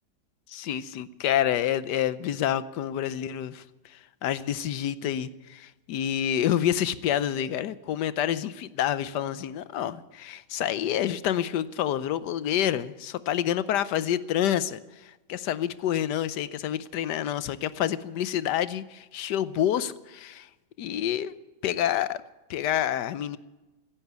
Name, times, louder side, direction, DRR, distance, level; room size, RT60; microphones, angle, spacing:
voice 1, 0.5-3.6 3.9-20.5 20.8-21.3 21.6-22.2 22.5-23.4, left 10 dB, 85° left, 15 dB, 1.3 m, -28 dB
15.5 x 10.5 x 8.2 m, 1.1 s
omnidirectional pair, 1.8 m